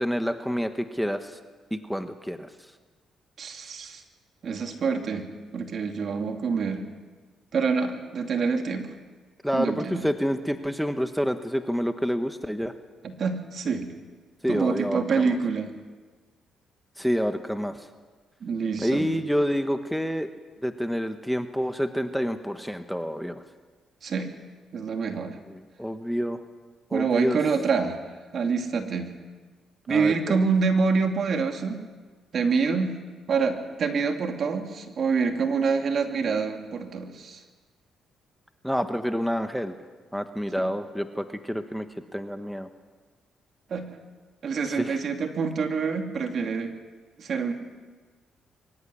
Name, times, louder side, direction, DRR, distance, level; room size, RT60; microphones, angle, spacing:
voice 1, 0.0-1.4 1.7-2.5 9.4-12.7 14.4-15.4 17.0-17.9 18.8-20.3 20.6-23.4 25.5-26.4 26.9-27.4 29.9-30.4 38.6-39.7 40.1-41.9 42.1-42.7 44.7-45.0, equal, ahead, 8 dB, 1.2 m, -28 dB
voice 2, 3.4-4.0 4.4-5.3 5.5-6.8 7.5-8.9 9.5-10.0 13.0-13.9 14.5-15.7 18.4-19.1 24.0-24.3 24.7-25.4 26.9-28.0 28.3-29.1 29.9-31.8 32.3-33.0 33.3-37.4 40.6-40.7 43.7-43.9 44.4-46.7 47.2-47.5, right 5 dB, 55° right, 5 dB, 2.6 m, -26 dB
24.0 x 15.0 x 9.9 m, 1.4 s
cardioid pair, 90°, 0 cm